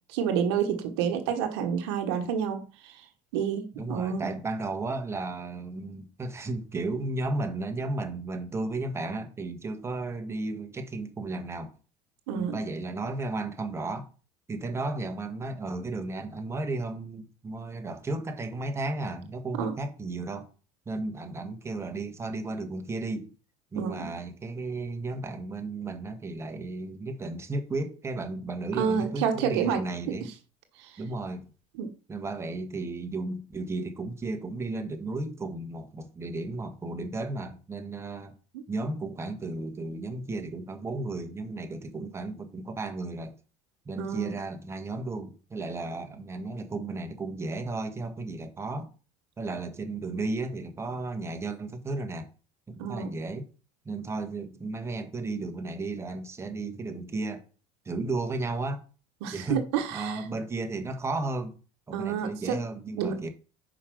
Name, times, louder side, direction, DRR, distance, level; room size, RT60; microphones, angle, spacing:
voice 1, 0.1-3.0 3.3-4.3 12.3-12.6 19.6-19.7 23.8-24.0 28.8-29.8 30.8-30.9 31.8-31.9 38.5-38.6 44.0-44.3 52.8-53.1 59.2-60.2 61.9-62.6 63.0-63.2, right 7 dB, 85° right, 1.2 m, -29 dB
voice 2, 3.7-11.8 12.3-14.1 14.5-20.5 20.8-23.3 23.7-30.3 31.0-31.5 32.1-38.4 38.7-43.3 43.8-48.9 49.4-52.3 52.7-53.5 53.8-57.4 57.8-58.8 59.3-61.6 61.9-63.3, right 2 dB, 20° right, 1.4 m, -34 dB
5.4 x 5.1 x 6.1 m
supercardioid pair, 105°, 14 cm